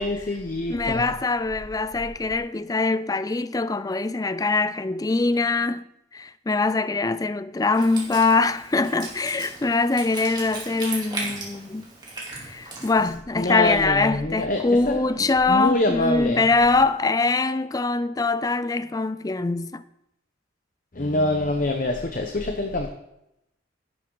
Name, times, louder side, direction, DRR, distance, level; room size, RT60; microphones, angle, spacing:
voice 1, 0.0-1.1 13.4-16.5 20.9-22.9, left 2 dB, 45° left, 0.8 m, -25 dB
voice 2, 0.7-5.9 6.1-11.8 12.3-19.8, left 3 dB, 20° left, 0.4 m, -23 dB
Wind instrument woodwind instrument, 7.7-13.2, right 3 dB, 20° right, 2.7 m, -37 dB
11.0 x 11.0 x 3.9 m
head